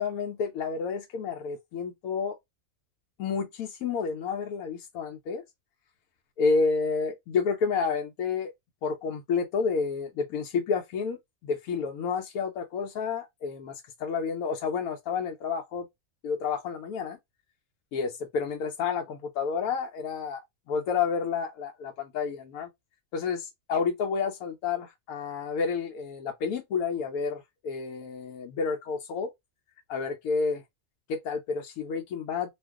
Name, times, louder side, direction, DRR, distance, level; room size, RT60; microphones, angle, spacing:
voice 1, 0.0-2.4 3.2-5.4 6.4-8.5 8.8-15.9 16.2-17.2 17.9-20.4 20.7-22.7 23.1-29.3 29.9-30.6 31.1-32.5, left 5 dB, 90° left, 1.0 m, -30 dB
2.5 x 2.3 x 3.5 m
omnidirectional pair, 1.4 m